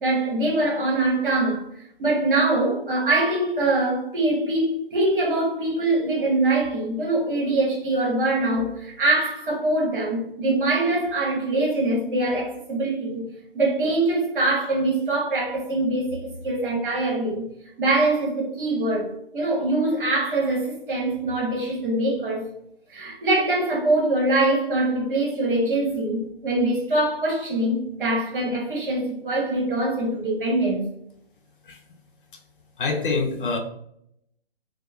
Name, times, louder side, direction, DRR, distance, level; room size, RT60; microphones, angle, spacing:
voice 1, 0.0-13.2 13.5-17.5 17.8-22.4 22.9-30.9, right 2 dB, 55° right, 1.2 m, -23 dB
voice 2, 32.8-33.6, left 4 dB, 55° left, 0.6 m, -25 dB
2.8 x 2.1 x 2.3 m
hypercardioid pair, 155°, 31 cm